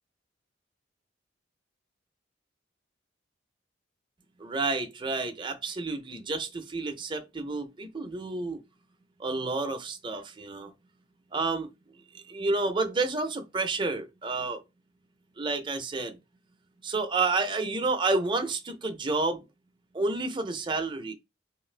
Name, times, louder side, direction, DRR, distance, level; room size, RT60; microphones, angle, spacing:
voice 1, 4.4-8.6 9.2-10.7 11.3-11.7 12.3-14.6 15.4-16.2 16.8-19.4 19.9-21.1, right 3 dB, 25° right, 0.5 m, -30 dB
2.6 x 2.5 x 3.2 m
head